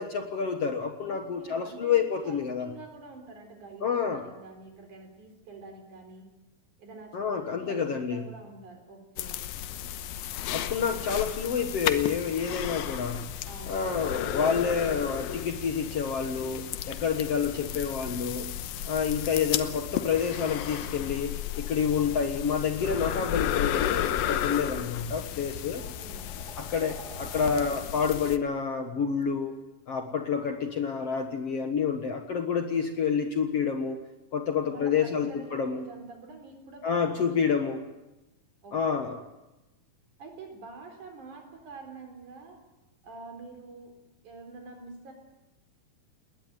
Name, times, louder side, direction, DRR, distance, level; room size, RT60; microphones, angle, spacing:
voice 1, 0.0-2.7 3.8-4.2 7.1-8.2 10.5-13.3 13.7-18.5 18.9-25.8 26.6-29.6 29.9-34.0 34.3-35.9 36.8-37.8 38.7-39.2, left 6 dB, 55° left, 6 dB, 1.9 m, -28 dB
voice 2, 1.1-6.3 6.8-9.4 13.5-14.2 25.8-26.3 34.7-37.7 38.6-39.1 40.2-42.6 43.0-43.9 44.2-45.1, right 3 dB, 60° right, 4 dB, 5.4 m, -46 dB
sound 1, 9.2-28.4, left 11 dB, 85° left, 2.8 m, -34 dB
sound 2, 21.5-22.6 23.7-23.9 24.8-24.9 25.5-27.7, right 3 dB, 30° right, 2.9 m, -48 dB
20.5 x 19.5 x 9.1 m, 0.98 s
omnidirectional pair, 4.1 m